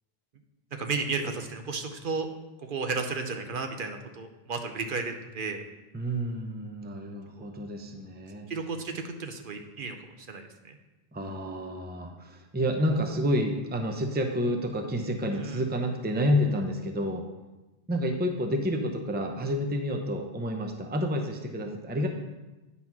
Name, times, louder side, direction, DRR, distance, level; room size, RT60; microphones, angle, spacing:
voice 1, 0.8-2.3 2.6-5.6 8.5-10.8 15.3-15.6, right 4 dB, 60° right, 5 dB, 0.9 m, -33 dB
voice 2, 5.9-8.5 11.1-17.2 17.9-22.1, equal, 10° right, 4 dB, 0.6 m, -29 dB
9.3 x 4.2 x 5.9 m, 1.1 s
omnidirectional pair, 1.0 m